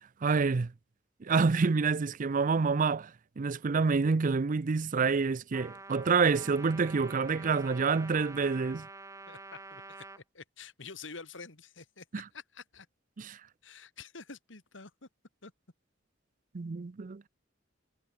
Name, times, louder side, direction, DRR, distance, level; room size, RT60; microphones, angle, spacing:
voice 1, 0.2-0.7 1.2-8.9 12.1-12.2 13.2-13.4 16.5-17.2, right 4 dB, 45° right, 0.5 m, -28 dB
Trumpet, 5.5-10.2, right 3 dB, 15° right, 1.2 m, -47 dB
voice 2, 9.3-12.0 12.3-12.9 13.6-15.1 15.4-15.5, left 4 dB, 70° left, 2.8 m, -48 dB
head